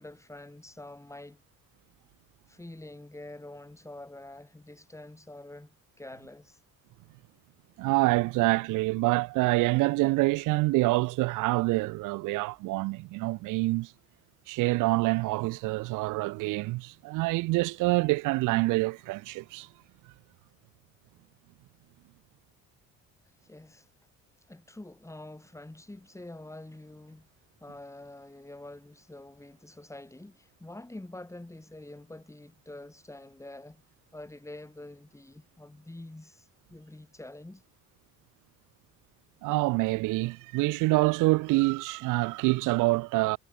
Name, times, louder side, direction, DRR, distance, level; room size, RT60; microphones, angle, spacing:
voice 1, 0.0-1.4 2.5-6.6 23.4-23.9 24.5-27.3 27.6-33.8 34.1-37.6, left 1 dB, 10° left, 3.8 m, -46 dB
voice 2, 7.8-13.9 14.5-19.7 39.4-43.4, right 21 dB, 80° right, 0.5 m, -26 dB
cardioid pair, 100°, 31 cm